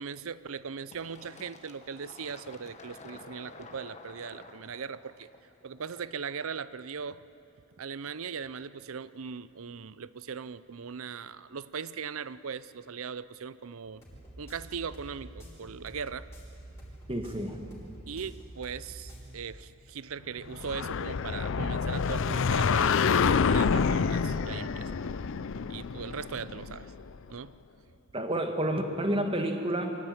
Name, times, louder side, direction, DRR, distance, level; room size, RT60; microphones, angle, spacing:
voice 1, 0.0-5.3 5.6-7.2 7.8-14.0 14.4-16.3 18.1-25.2 25.7-26.9 27.3-27.6, right 6 dB, 65° right, 16 dB, 0.6 m, -39 dB
Fill (with liquid), 0.9-6.3, left 3 dB, 30° left, 1.3 m, -50 dB
sound 1, 13.8-19.3, right 1 dB, 10° left, 5.4 m, -47 dB
voice 2, 17.1-17.6 28.1-30.0, right 1 dB, 25° right, 5 dB, 1.7 m, -30 dB
sound 2, 20.5-27.1, left 5 dB, 55° left, 0.5 m, -27 dB
23.5 x 16.0 x 9.5 m, 2.8 s
head